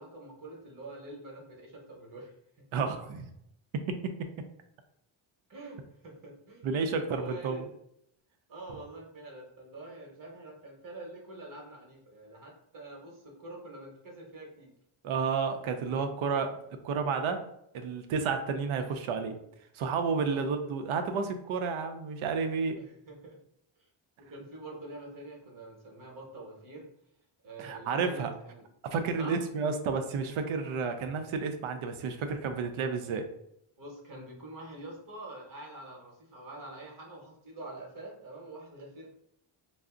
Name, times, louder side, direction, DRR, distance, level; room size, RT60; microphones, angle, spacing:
voice 1, 0.0-2.7 5.5-7.7 8.5-14.7 18.8-18.9 20.2-20.5 22.8-23.4 24.2-26.9 27.4-28.7 29.2-29.4 33.8-39.1, right 2 dB, 40° right, -1 dB, 0.9 m, -46 dB
voice 2, 2.7-3.3 3.7-4.3 6.6-7.6 15.0-17.4 17.7-19.4 19.7-22.8 27.6-28.3 28.9-33.3, right 5 dB, 75° right, 7 dB, 0.6 m, -31 dB
2.4 x 2.0 x 3.6 m, 0.74 s
wide cardioid pair, 135°, 48 cm